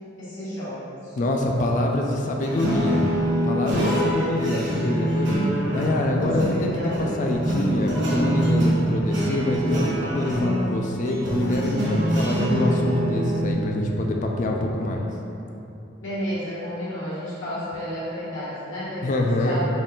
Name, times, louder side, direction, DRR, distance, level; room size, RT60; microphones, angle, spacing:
voice 1, 0.2-1.2 6.1-7.4 16.0-19.7, equal, 65° left, -11 dB, 1.5 m, -32 dB
voice 2, 1.2-3.0 3.4-15.1 19.0-19.6, left 1 dB, 40° left, 1 dB, 0.3 m, -25 dB
sound 1, 2.4-13.5, equal, 60° right, 0.9 m, -24 dB
3.9 x 2.4 x 3.7 m, 2.8 s
head